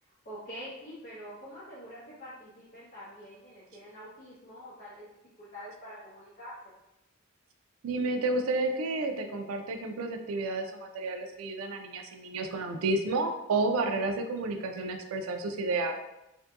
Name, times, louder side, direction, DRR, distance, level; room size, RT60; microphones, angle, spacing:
voice 1, 0.0-5.1 5.4-6.5, equal, 40° left, -10 dB, 0.7 m, -46 dB
voice 2, 7.8-15.9, right 2 dB, 85° right, 5 dB, 0.4 m, -31 dB
2.6 x 2.5 x 2.3 m, 0.92 s
head